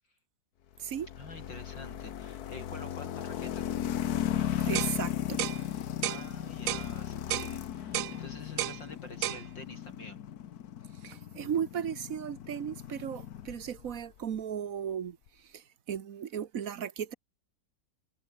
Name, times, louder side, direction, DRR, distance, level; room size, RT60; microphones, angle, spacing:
sound 1, 0.9-14.0, left 10 dB, 60° left, 1.4 m, -36 dB
voice 1, 1.2-3.7 5.6-10.2, left 2 dB, 75° left, 8.8 m, -48 dB
voice 2, 4.6-5.4 11.0-15.2 15.5-15.6 15.9-17.1, right 8 dB, 50° right, 1.4 m, -35 dB
sound 2, 4.7-5.0 5.4-5.6 6.0-6.2 6.7-6.9 7.3-7.5 7.9-8.2 8.6-8.8 9.2-9.4, right 14 dB, 90° right, 0.7 m, -32 dB
omnidirectional pair, 2.0 m